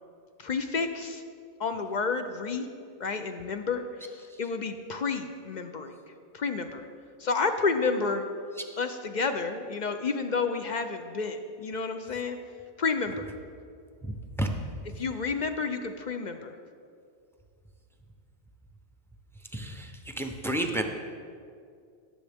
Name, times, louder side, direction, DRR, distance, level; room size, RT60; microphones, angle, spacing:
voice 1, 0.4-1.2 1.6-2.7 3.0-4.1 4.4-6.0 6.3-6.9 7.2-8.2 8.8-12.4 12.8-13.3 15.0-16.5, left 4 dB, 50° left, 7 dB, 0.6 m, -30 dB
voice 2, 14.0-14.5 19.5-19.9 20.2-20.8, right 1 dB, 5° left, 4 dB, 0.5 m, -30 dB
17.5 x 7.3 x 3.5 m, 2.3 s
omnidirectional pair, 1.2 m